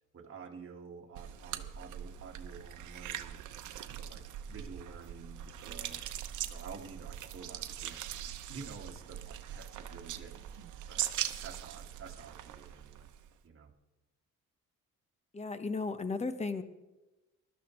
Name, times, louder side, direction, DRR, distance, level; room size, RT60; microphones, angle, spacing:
voice 1, 0.1-6.0 6.4-10.4 10.9-11.1 11.4-13.1 13.4-13.7, right 5 dB, 45° right, 2 dB, 1.8 m, -50 dB
sound 1, 1.2-13.4, right 11 dB, 75° right, 0.9 m, -41 dB
voice 2, 15.3-16.6, left 3 dB, 20° left, 10 dB, 1.1 m, -35 dB
20.0 x 12.5 x 3.2 m, 1.1 s
cardioid pair, 90°, 30 cm